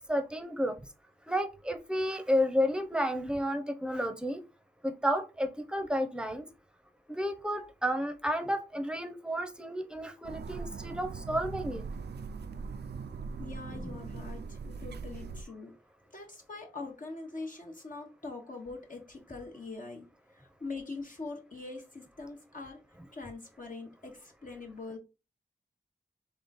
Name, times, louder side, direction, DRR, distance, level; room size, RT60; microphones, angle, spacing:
voice 1, 0.1-0.8 1.3-4.4 4.8-6.5 7.1-11.8 13.8-14.0, equal, 5° right, 0.7 m, -31 dB
sound 1, 10.2-15.4, right 5 dB, 75° right, 0.4 m, -40 dB
voice 2, 13.4-15.7 16.1-25.0, left 3 dB, 50° left, 1.0 m, -43 dB
3.8 x 3.2 x 4.0 m
wide cardioid pair, 65°, 17 cm